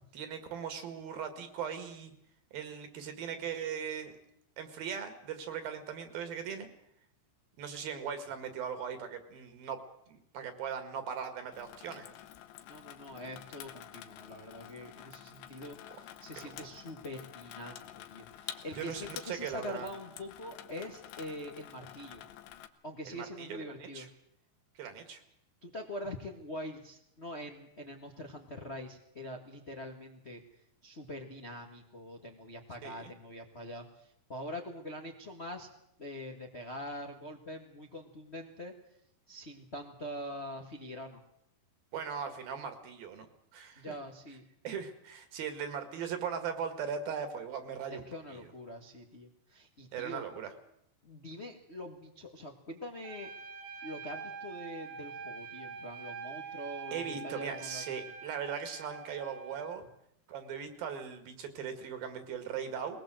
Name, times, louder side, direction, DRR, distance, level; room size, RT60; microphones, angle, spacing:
voice 1, 0.1-2.1 2.5-4.1 4.6-6.7 7.6-12.1 16.4-16.5 18.8-19.9 23.1-24.1 24.8-25.2 32.8-33.1 41.9-43.3 43.5-43.9 44.6-48.0 48.3-48.5 49.9-50.5 56.9-59.9 60.3-63.0, right 7 dB, 65° right, 8 dB, 3.6 m, -39 dB
Water tap faucet / Sink (filling or washing), 11.5-22.7, left 12 dB, 90° left, 3.2 m, -49 dB
voice 2, 12.6-22.2 22.8-24.1 25.6-30.4 30.8-35.7 36.0-38.7 39.3-41.2 43.8-44.4 47.9-50.2 51.0-53.3 53.8-57.8, left 1 dB, 65° left, 2 dB, 0.6 m, -44 dB
Trumpet, 53.0-59.8, right 6 dB, 80° right, 4.6 m, -45 dB
21.0 x 19.5 x 7.7 m, 0.75 s
omnidirectional pair, 4.8 m